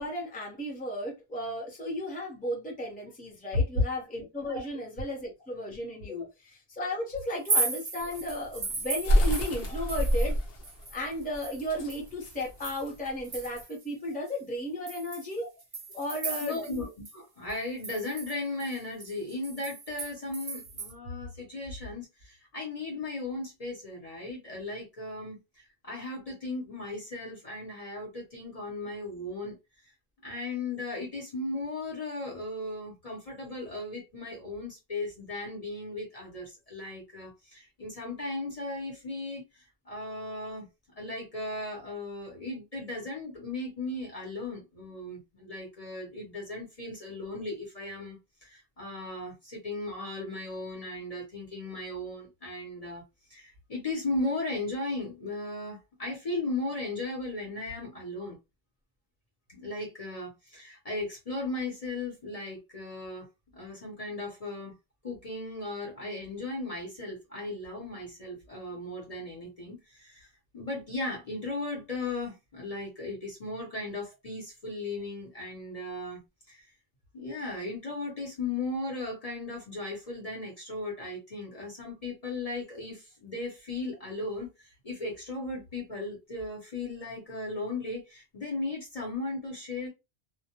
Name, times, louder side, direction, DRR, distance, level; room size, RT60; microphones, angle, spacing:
voice 1, 0.0-10.4 10.9-15.4 15.9-16.6, equal, 10° left, 0.7 m, -34 dB
sound 1, 7.3-10.4 10.6-13.8 14.3-14.4 14.9-16.8 17.1-17.2 17.5-20.9, right 3 dB, 30° right, 0.4 m, -36 dB
sound 2, 8.0-13.6, equal, 70° left, 0.8 m, -28 dB
voice 2, 16.4-29.5 30.2-40.7 41.0-53.0 53.3-58.4 59.5-63.3 63.5-64.8 65.0-70.3 70.5-76.7 77.1-89.9, left 2 dB, 40° left, 0.8 m, -36 dB
2.1 x 2.1 x 2.8 m
omnidirectional pair, 1.1 m